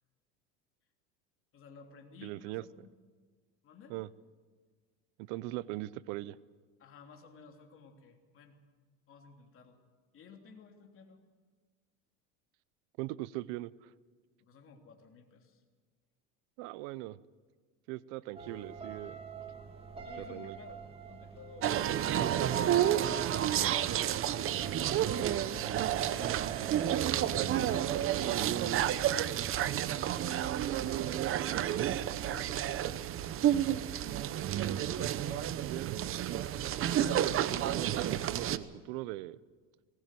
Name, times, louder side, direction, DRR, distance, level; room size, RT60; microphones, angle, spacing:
voice 1, 1.5-2.9 3.6-3.9 6.8-8.6 9.1-9.8 10.1-11.2 14.4-15.6 20.0-23.6 25.4-25.5 25.9-26.4 26.7-29.1 29.9-31.0 32.2-33.0 34.4-35.5 37.0-37.3, left 5 dB, 40° left, 3 dB, 3.3 m, -54 dB
voice 2, 2.2-2.6 3.9-4.1 5.3-6.4 13.0-13.9 16.6-17.2 17.9-19.2 20.2-20.6 35.7-36.0 36.9-39.4, right 18 dB, 80° right, 19 dB, 0.8 m, -40 dB
sound 1, 18.4-27.8, right 4 dB, 15° right, 2.1 m, -46 dB
sound 2, 21.6-38.6, right 11 dB, 40° right, 0.9 m, -30 dB
19.5 x 19.0 x 7.7 m, 1.5 s
cardioid pair, 125°, 33 cm